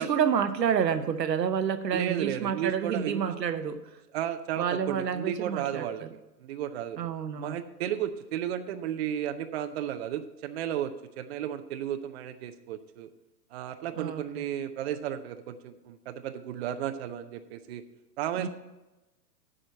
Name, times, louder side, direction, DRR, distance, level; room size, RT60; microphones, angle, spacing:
voice 1, 0.0-3.8 4.6-6.1 7.0-7.6 14.0-14.4 18.4-18.5, right 7 dB, 80° right, 10 dB, 0.9 m, -29 dB
voice 2, 1.9-3.3 4.1-6.0 6.4-7.0 7.4-13.1 13.5-17.8 18.2-18.5, right 10 dB, 40° right, 8 dB, 0.6 m, -33 dB
8.6 x 5.1 x 7.5 m, 1.0 s
hypercardioid pair, 120°, 50 cm